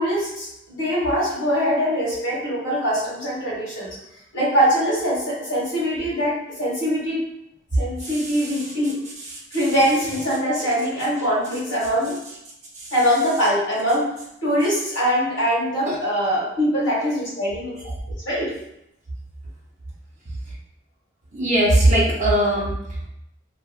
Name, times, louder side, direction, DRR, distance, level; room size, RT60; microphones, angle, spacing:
voice 1, 0.0-3.9 4.3-7.2 7.8-8.9 9.5-12.1 12.9-14.1 14.4-17.8 18.1-18.5, equal, 75° left, -6 dB, 1.4 m, -22 dB
voice 2, 8.0-8.7 9.2-9.4 12.7-12.9 15.9-16.0 21.3-23.1, right 1 dB, 40° right, -5 dB, 0.8 m, -21 dB
2.8 x 2.4 x 2.4 m, 0.80 s
head